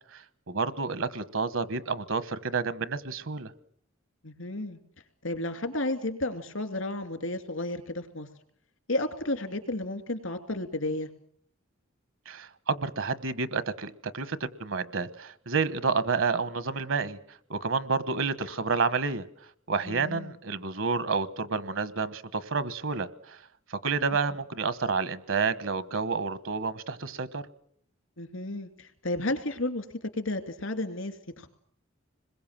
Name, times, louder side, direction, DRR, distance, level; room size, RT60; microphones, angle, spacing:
voice 1, 0.5-3.5 12.3-17.2 17.5-19.2 19.7-23.4 23.7-27.4, right 4 dB, 70° right, 1.2 m, -29 dB
voice 2, 4.2-4.8 5.2-8.3 8.9-11.1 19.8-20.4 28.2-31.5, left 2 dB, 75° left, 2.6 m, -32 dB
27.0 x 21.5 x 7.4 m
head